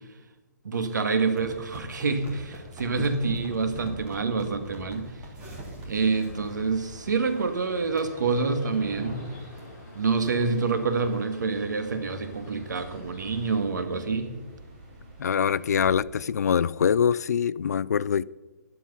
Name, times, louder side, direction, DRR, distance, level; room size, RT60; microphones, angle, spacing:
voice 1, 0.6-5.2 5.9-9.3 10.0-14.3, right 4 dB, 80° right, 2.0 m, -27 dB
sound 1, 1.4-7.6 8.0-8.1 8.6-8.8 9.2-9.3 9.5-9.6 10.2-10.4 10.8-10.9 11.1-11.2 11.5-12.4 12.9-13.0, right 1 dB, 15° right, 1.6 m, -43 dB
sound 2, 2.1-15.9, equal, 30° right, 2.9 m, -46 dB
sound 3, 6.0-13.6, left 2 dB, 25° left, 5.6 m, -53 dB
voice 2, 15.2-18.2, left 7 dB, 60° left, 0.4 m, -24 dB
12.0 x 11.0 x 5.6 m
hypercardioid pair, 180°, 10 cm